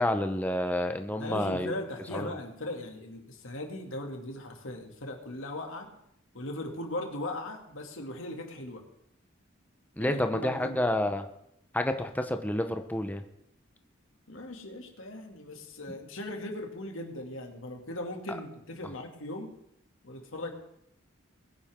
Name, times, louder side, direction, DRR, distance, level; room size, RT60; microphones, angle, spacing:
voice 1, 0.0-1.7 2.1-2.3 10.0-11.2 11.7-13.2, left 1 dB, 10° left, 7 dB, 0.8 m, -29 dB
voice 2, 1.2-5.9 6.3-8.8 10.0-10.8 14.3-19.6 20.0-20.5, left 1 dB, 85° left, 2 dB, 2.4 m, -38 dB
21.0 x 10.5 x 3.7 m, 0.77 s
head